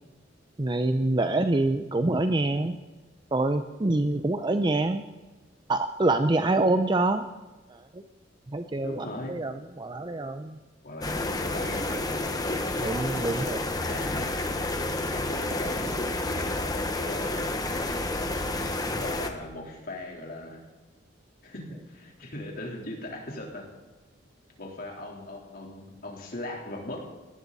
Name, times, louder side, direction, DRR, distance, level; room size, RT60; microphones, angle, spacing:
voice 1, 0.6-2.8 3.3-5.0 5.7-7.2 7.7-8.0 8.5-10.6 12.8-13.6, right 2 dB, 25° right, 8 dB, 0.6 m, -26 dB
voice 2, 8.8-9.3 10.8-12.8 13.7-14.5 15.0-17.7 18.9-20.7 21.4-23.7 24.6-27.1, left 1 dB, 55° left, 0 dB, 3.7 m, -39 dB
sound 1, 11.0-19.3, left 2 dB, 20° left, 1.3 m, -30 dB
19.5 x 17.0 x 4.1 m, 1.2 s
head